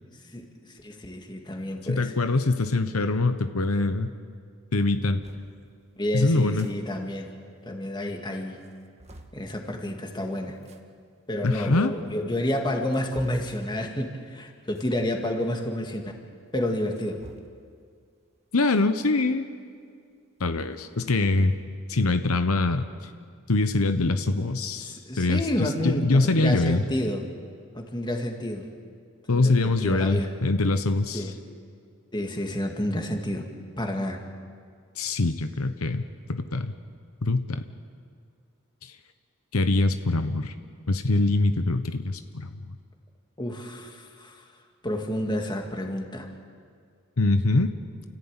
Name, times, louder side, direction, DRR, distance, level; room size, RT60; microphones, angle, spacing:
voice 1, 0.1-2.1 6.0-7.3 7.6-8.6 9.3-10.6 11.3-16.1 16.5-17.2 24.8-27.2 27.7-28.7 29.3-30.3 31.1-31.3 32.1-33.5 33.8-34.2 43.4-44.4 44.8-46.3, left 1 dB, 20° left, 3 dB, 1.9 m, -30 dB
voice 2, 1.9-4.1 4.7-5.2 6.1-6.7 11.4-11.9 18.5-19.5 20.4-21.5 21.9-23.1 23.5-26.8 29.3-31.3 35.0-36.0 36.3-36.7 37.2-37.6 38.8-38.9 39.5-40.5 40.9-42.5 47.2-47.7, left 2 dB, 85° left, 9 dB, 1.0 m, -24 dB
sound 1, 5.2-5.5 6.4-6.8 7.1-7.2 7.4-7.5 8.1-8.2 8.6-9.4 10.6-10.8 11.7-11.8 12.4-13.6 14.7-15.0 16.7-17.7 18.7-18.9 19.3-19.4 20.6-21.6, right 1 dB, 30° right, 1.5 m, -48 dB
29.5 x 15.0 x 8.9 m, 2.2 s
head